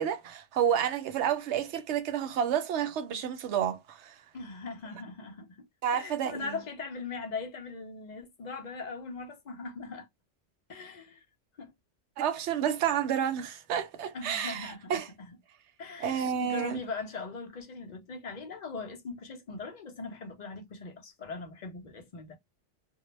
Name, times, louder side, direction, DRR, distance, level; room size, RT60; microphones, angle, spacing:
voice 1, 0.0-4.1 5.8-6.6 12.2-15.1 16.0-16.8, right 9 dB, 70° right, 0.8 m, -30 dB
voice 2, 4.3-5.7 5.9-10.1 10.7-11.2 11.6-11.7 14.1-15.0 15.3-15.4 15.8-22.4, left 4 dB, 45° left, 0.6 m, -40 dB
2.2 x 2.0 x 3.0 m
omnidirectional pair, 1.3 m